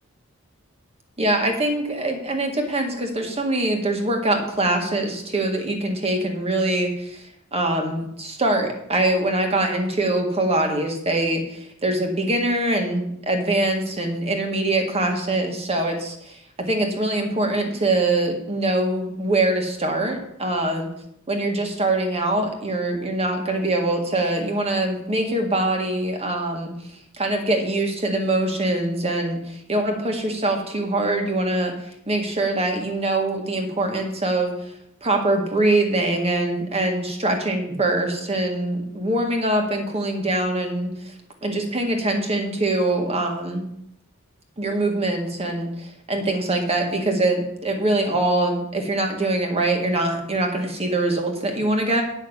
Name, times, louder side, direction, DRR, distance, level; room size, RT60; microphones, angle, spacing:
voice 1, 1.2-20.9 21.3-26.7 27.1-34.7 35.0-41.1 41.4-43.7 44.6-52.0, right 2 dB, 30° right, 3 dB, 1.8 m, -23 dB
9.1 x 6.2 x 8.1 m, 0.77 s
head